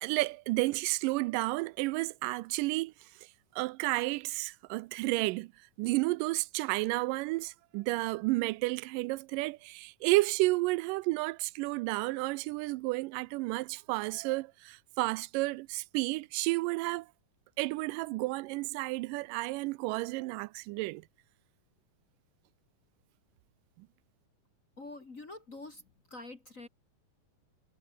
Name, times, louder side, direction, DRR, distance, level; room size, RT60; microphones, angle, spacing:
voice 1, 0.0-2.9 3.6-5.5 5.8-17.1 17.6-21.0, right 22 dB, 85° right, 2.2 m, -31 dB
voice 2, 24.8-25.8 26.1-26.7, left 2 dB, 30° left, 1.8 m, -46 dB
omnidirectional pair, 3.8 m